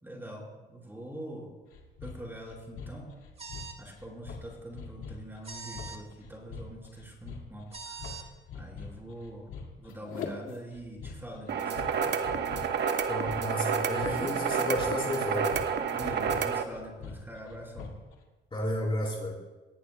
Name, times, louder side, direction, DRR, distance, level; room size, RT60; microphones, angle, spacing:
voice 1, 0.0-1.5 2.0-3.1 3.8-8.2 8.5-9.5 9.8-12.3 14.0-14.4 15.9-17.9, right 1 dB, 10° right, -3 dB, 4.4 m, -44 dB
sound 1, 1.7-18.1, left 6 dB, 85° left, 2.0 m, -44 dB
sound 2, 3.4-3.8 5.4-6.0 7.7-8.3, right 5 dB, 30° right, 1.5 m, -42 dB
sound 3, 11.5-16.6, right 6 dB, 60° right, 1.1 m, -29 dB
voice 2, 13.1-15.6 18.5-19.3, left 1 dB, 25° left, -3 dB, 4.1 m, -32 dB
18.5 x 16.0 x 2.2 m, 1.2 s
cardioid pair, 90°, 20 cm